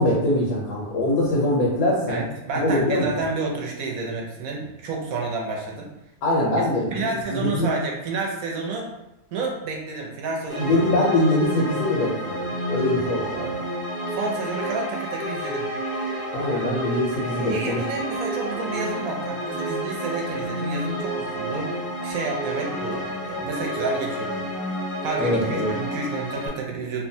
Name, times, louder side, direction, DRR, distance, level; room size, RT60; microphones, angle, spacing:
voice 1, 0.0-2.2 2.6-3.1 6.2-6.9 7.3-7.7 10.6-13.6 16.3-17.8 25.2-25.7, left 1 dB, 90° left, -5 dB, 1.2 m, -23 dB
voice 2, 2.1-5.9 6.9-8.9 9.3-10.8 14.1-15.7 17.3-21.7 22.0-24.4 25.0-27.0, right 3 dB, 70° right, -1 dB, 1.0 m, -30 dB
sound 1, 10.5-26.5, equal, 30° right, 0.3 m, -30 dB
2.9 x 2.2 x 2.6 m, 0.91 s
omnidirectional pair, 1.7 m